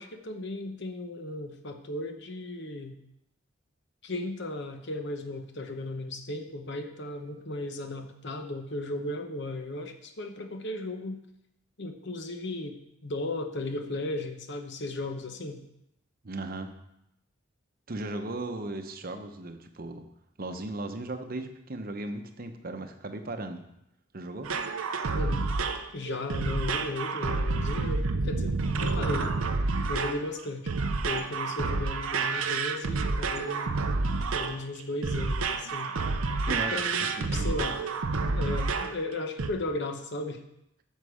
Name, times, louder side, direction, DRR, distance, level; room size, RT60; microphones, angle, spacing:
voice 1, 0.0-3.0 4.0-11.2 11.8-15.6 25.1-25.4 25.9-29.4 29.9-30.7 31.0-33.8 34.2-35.9 36.5-37.8 38.3-40.4, left 2 dB, 60° left, 6 dB, 1.0 m, -35 dB
voice 2, 16.2-16.7 17.9-20.0 20.4-23.6 24.1-24.5 36.5-36.8 37.2-37.5, right 2 dB, 45° right, 7 dB, 0.8 m, -36 dB
sound 1, 24.4-39.0 39.4-39.5, right 3 dB, 90° right, 0.7 m, -29 dB
9.5 x 6.6 x 5.0 m, 0.81 s
head